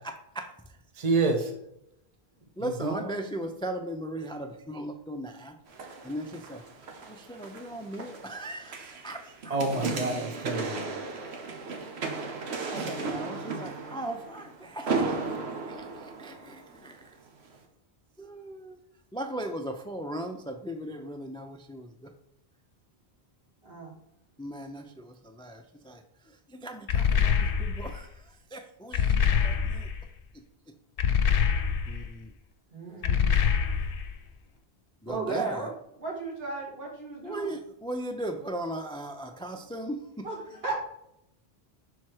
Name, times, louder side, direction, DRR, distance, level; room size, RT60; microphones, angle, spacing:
voice 1, 0.0-0.5 2.6-5.6 6.0-6.6 7.0-9.6 9.9-10.0 12.7-15.2 15.7-17.0 18.2-18.8 19.1-22.1 24.4-26.0 26.5-28.1 28.5-29.9 31.9-32.3 35.0-35.7 37.2-40.3, right 1 dB, 10° left, 6 dB, 0.3 m, -38 dB
voice 2, 0.9-1.5 2.6-3.1 9.5-10.8, right 3 dB, 40° right, 3 dB, 0.9 m, -28 dB
sound 1, 5.7-16.9 17.5-17.6, right 4 dB, 90° right, 1.2 m, -35 dB
voice 3, 9.5-9.8 23.6-23.9 32.7-33.3 35.0-35.7 36.0-37.5 40.2-40.8, right 3 dB, 70° right, -4 dB, 2.4 m, -35 dB
sound 2, 26.9-28.0 28.9-30.0 31.0-32.1 33.0-34.1, left 7 dB, 65° left, 0.8 m, -25 dB
6.1 x 4.3 x 4.7 m, 0.81 s
omnidirectional pair, 1.1 m